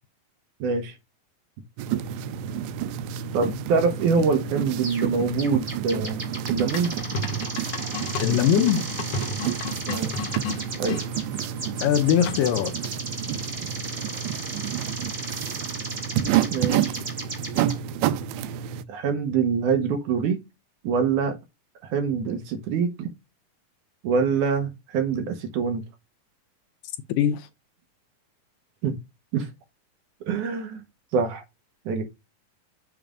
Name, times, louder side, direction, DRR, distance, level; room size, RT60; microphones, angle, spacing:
voice 1, 0.6-0.9 3.3-7.2 9.9-10.1 10.8-11.0 16.5-17.0 18.9-20.4 20.8-21.4 21.8-23.1 24.0-25.8 28.8-28.9 29.3-29.5 30.3-30.8 31.1-31.4 31.9-32.0, right 5 dB, 70° right, 2.3 m, -25 dB
sound 1, 1.8-18.8, right 10 dB, 85° right, 2.3 m, -30 dB
sound 2, 4.8-5.1 5.4-17.7, right 2 dB, 25° right, 1.6 m, -35 dB
sound 3, 6.7-11.1 12.3-12.7, left 3 dB, 65° left, 1.6 m, -33 dB
voice 2, 8.2-8.9 11.8-12.7 27.2-27.4, left 10 dB, 80° left, 2.2 m, -21 dB
7.1 x 3.3 x 5.0 m
omnidirectional pair, 4.0 m